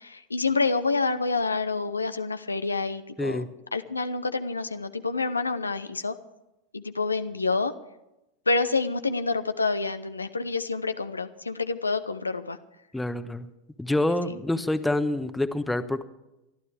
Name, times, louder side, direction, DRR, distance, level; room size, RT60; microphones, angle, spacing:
voice 1, 0.0-3.4 3.7-6.1 6.7-7.7 8.5-12.6, left 3 dB, 90° left, 10 dB, 0.7 m, -28 dB
voice 2, 3.2-3.5 12.9-13.5 13.8-16.0, left 1 dB, 5° left, 10 dB, 1.1 m, -27 dB
28.0 x 12.0 x 3.4 m, 0.93 s
figure-of-eight pair, 85°, 0 cm